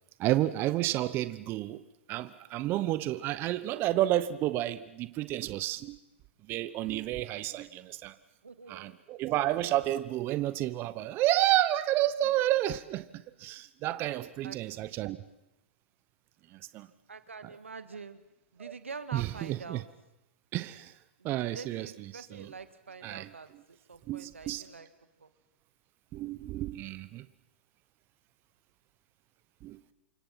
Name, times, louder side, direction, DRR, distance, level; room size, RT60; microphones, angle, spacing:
voice 1, 0.2-6.0 6.5-8.1 8.7-15.2 16.5-16.9 18.6-18.7 19.1-19.8 20.5-20.9 21.2-21.9 22.1-22.5 23.0-23.3 24.1-24.6 26.1-27.3 29.6-29.8, right 14 dB, 35° right, 14 dB, 1.0 m, -30 dB
voice 2, 8.4-9.0 14.4-14.6 17.1-18.2 18.5-19.8 21.2-24.9 25.2-25.3, right 5 dB, 90° right, 11 dB, 1.9 m, -46 dB
28.5 x 25.0 x 5.9 m, 0.89 s
hypercardioid pair, 115°, 7 cm